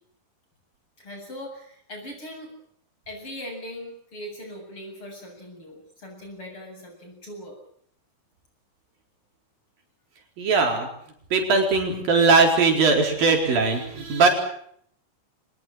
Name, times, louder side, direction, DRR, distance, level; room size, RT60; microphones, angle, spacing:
voice 1, 1.0-2.5 3.1-7.6, equal, 35° left, 2 dB, 8.8 m, -40 dB
voice 2, 10.4-10.9 11.3-14.3, right 4 dB, 80° right, 3 dB, 6.1 m, -20 dB
25.0 x 20.0 x 7.8 m, 0.65 s
omnidirectional pair, 4.0 m